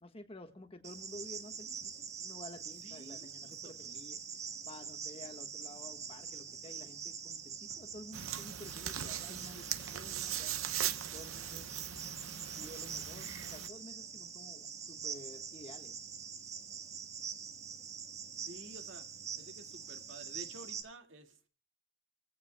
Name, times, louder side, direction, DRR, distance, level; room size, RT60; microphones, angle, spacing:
voice 1, 0.0-4.2 4.6-10.6 11.1-11.7 12.5-16.0, left 1 dB, 25° left, 1.4 m, -52 dB
Cricket, 0.8-20.8, right 7 dB, 35° right, 1.4 m, -45 dB
voice 2, 2.8-3.7 18.4-19.1 19.4-21.5, right 1 dB, 60° right, 2.0 m, -52 dB
sound 1, 8.1-13.7, right 10 dB, 80° right, 0.8 m, -39 dB
30.0 x 16.0 x 2.2 m
head